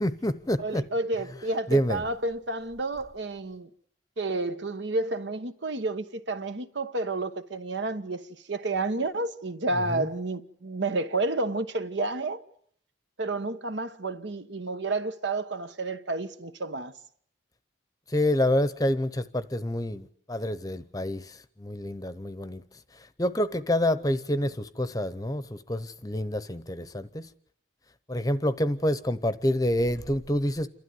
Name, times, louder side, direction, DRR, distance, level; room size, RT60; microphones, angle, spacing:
voice 1, 0.0-0.8 1.7-2.0 9.9-10.1 18.1-22.6 23.2-27.3 28.1-30.7, left 1 dB, 20° left, 0.8 m, -27 dB
voice 2, 0.6-3.7 4.2-8.2 8.5-12.4 13.2-16.9, right 2 dB, 70° right, 1.2 m, -30 dB
28.5 x 13.0 x 9.4 m
head